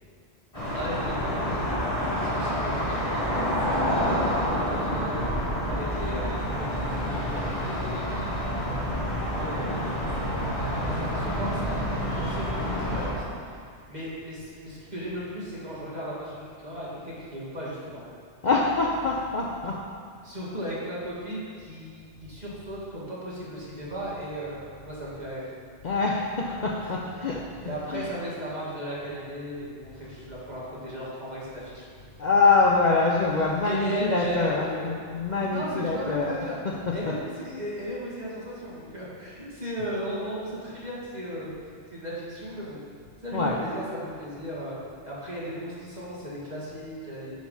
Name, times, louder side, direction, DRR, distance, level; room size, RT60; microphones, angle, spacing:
sound 1, 0.5-13.1, equal, 30° left, 2.6 m, -28 dB
voice 1, 0.7-13.2 13.9-18.0 20.2-25.5 26.8-26.9 27.6-31.9 33.6-34.9 35.4-36.6 36.9-41.5 41.9-42.8 43.2-44.8 45.0-47.3, equal, 40° right, -8 dB, 2.3 m, -36 dB
voice 2, 18.4-19.8 25.8-27.4 27.9-28.1 32.2-36.4 36.6-37.2 43.3-43.6, left 4 dB, 50° left, -1 dB, 0.7 m, -25 dB
10.5 x 4.7 x 5.6 m, 2.1 s
omnidirectional pair, 1.2 m